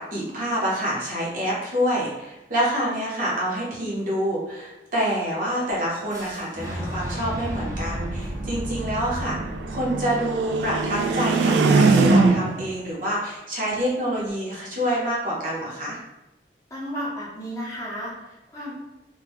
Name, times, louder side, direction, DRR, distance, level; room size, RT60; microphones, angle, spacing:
voice 1, 0.0-9.4 9.7-16.0, equal, 50° right, -5 dB, 0.9 m, -27 dB
Boom, 6.1-12.0, equal, 20° right, 0.6 m, -34 dB
sound 1, 7.2-12.7, right 3 dB, 80° right, 0.3 m, -22 dB
voice 2, 16.7-18.7, equal, 15° left, -7 dB, 0.8 m, -33 dB
3.6 x 2.2 x 3.0 m, 0.96 s
head